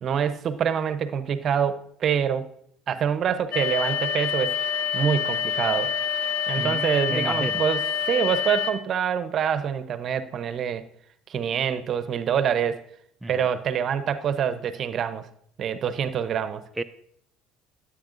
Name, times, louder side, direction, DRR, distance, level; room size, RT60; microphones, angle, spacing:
voice 1, 0.0-2.5 2.9-4.5 4.9-5.9 6.5-10.8 11.3-12.8 13.3-15.3 15.6-16.6, right 8 dB, 50° right, 12 dB, 0.7 m, -26 dB
sound 1, 3.5-8.7, left 8 dB, 75° left, 0.8 m, -27 dB
voice 2, 6.5-7.6 13.2-13.3 16.8-16.9, right 2 dB, 10° right, 7 dB, 0.4 m, -31 dB
13.0 x 8.8 x 2.6 m, 0.68 s
supercardioid pair, 80°, 0 cm